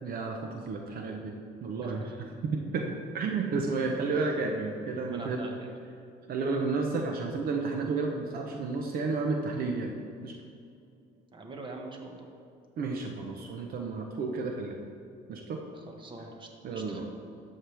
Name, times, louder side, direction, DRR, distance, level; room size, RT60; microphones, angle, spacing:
voice 1, 0.0-1.3 1.6-5.5 6.3-9.9 10.2-10.4 12.8-14.8 15.3-15.6 16.6-17.1, right 4 dB, 60° right, 2 dB, 0.9 m, -32 dB
voice 2, 5.0-5.7 11.3-12.3 15.9-17.0, right 2 dB, 30° right, 2 dB, 1.5 m, -43 dB
12.5 x 7.8 x 3.5 m, 2.5 s
cardioid pair, 110°, 17 cm